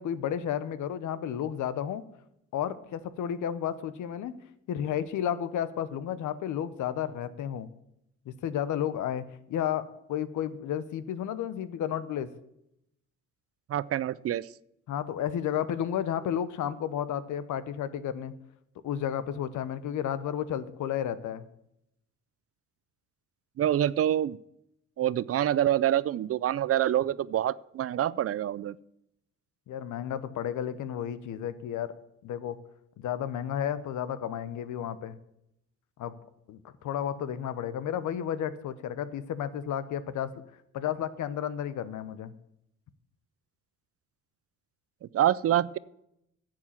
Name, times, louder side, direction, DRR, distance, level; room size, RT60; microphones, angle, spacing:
voice 1, 0.0-2.0 2.5-4.4 4.7-7.7 8.3-12.3 14.9-18.3 18.8-21.4 29.7-31.9 32.2-32.6 33.0-35.2 36.0-36.1 36.5-40.3 40.7-42.3, left 9 dB, 75° left, 14 dB, 1.0 m, -32 dB
voice 2, 13.7-14.5 23.6-24.4 25.0-28.7 45.1-45.8, right 11 dB, 50° right, 20 dB, 0.5 m, -26 dB
11.0 x 7.8 x 7.3 m, 0.79 s
cardioid pair, 90°, 30 cm